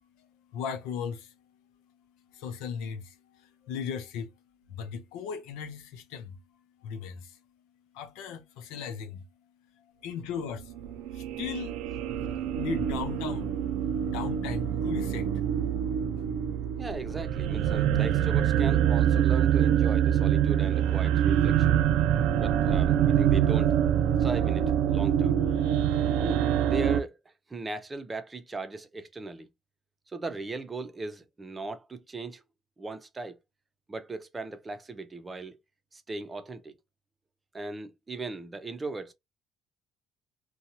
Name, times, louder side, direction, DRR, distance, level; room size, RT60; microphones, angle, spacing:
voice 1, 0.5-1.3 2.3-4.3 4.7-6.4 6.8-7.4 7.9-9.2 10.0-10.8 11.1-11.8 12.5-13.7 14.0-15.3, left 7 dB, 90° left, 0.6 m, -37 dB
sound 1, 10.8-27.0, right 10 dB, 80° right, 0.4 m, -25 dB
voice 2, 16.8-21.8 22.4-23.7 24.2-25.4 26.2-29.5 30.1-32.4 32.8-33.4 33.9-35.6 35.9-36.7 37.5-39.1, right 2 dB, 20° right, 0.6 m, -38 dB
2.8 x 2.3 x 2.6 m
cardioid pair, 115°, 0 cm